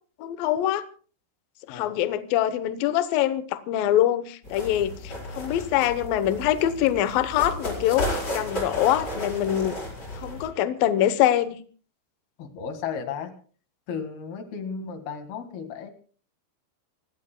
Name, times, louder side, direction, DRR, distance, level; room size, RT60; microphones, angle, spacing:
voice 1, 0.2-0.9 1.7-9.8 10.2-11.6, left 12 dB, 85° left, 12 dB, 2.0 m, -24 dB
voice 2, 1.7-2.1 12.4-13.3 13.9-15.9, left 6 dB, 60° left, 7 dB, 3.5 m, -34 dB
sound 1, 4.4-10.5, left 1 dB, 20° left, 4.9 m, -33 dB
30.0 x 16.5 x 2.2 m, 0.41 s
omnidirectional pair, 5.4 m